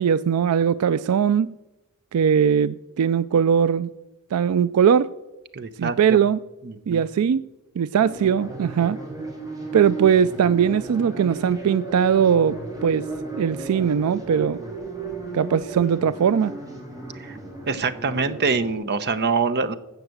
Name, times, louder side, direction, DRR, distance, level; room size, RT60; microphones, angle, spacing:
voice 1, 0.0-1.6 2.1-3.9 4.3-5.1 5.8-6.4 6.9-7.4 7.8-9.0 9.7-12.6 12.8-13.1 13.4-14.6 15.3-16.6, right 7 dB, 80° right, 0.4 m, -20 dB
voice 2, 5.5-6.2 6.6-7.0 17.2-17.4 17.7-19.7, right 4 dB, 50° right, 0.8 m, -25 dB
sound 1, 8.0-18.7, right 3 dB, 15° right, 3.9 m, -34 dB
15.0 x 5.8 x 7.8 m
head